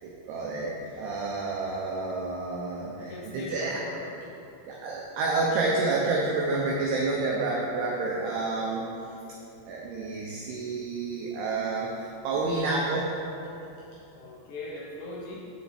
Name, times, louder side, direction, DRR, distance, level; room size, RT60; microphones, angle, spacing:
voice 1, 0.0-3.8 4.7-8.8 9.6-13.1, right 3 dB, 90° right, -3 dB, 2.3 m, -29 dB
voice 2, 3.0-4.1 14.1-15.4, left 2 dB, 80° left, -4 dB, 2.5 m, -40 dB
7.6 x 6.9 x 4.3 m, 2.8 s
omnidirectional pair, 5.7 m